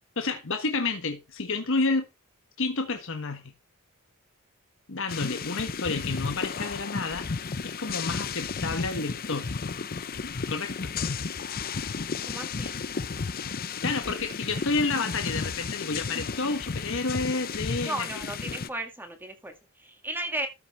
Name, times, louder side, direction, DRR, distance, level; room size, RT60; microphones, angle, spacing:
voice 1, 0.2-2.1 2.6-3.5 4.9-7.3 7.6-9.5 10.5-11.0 13.8-18.2, left 3 dB, 60° left, 1.3 m, -30 dB
sound 1, 5.1-18.7, left 5 dB, 40° left, 0.6 m, -33 dB
voice 2, 12.3-12.8 17.8-20.5, right 1 dB, 10° right, 2.0 m, -35 dB
13.0 x 5.9 x 4.3 m
head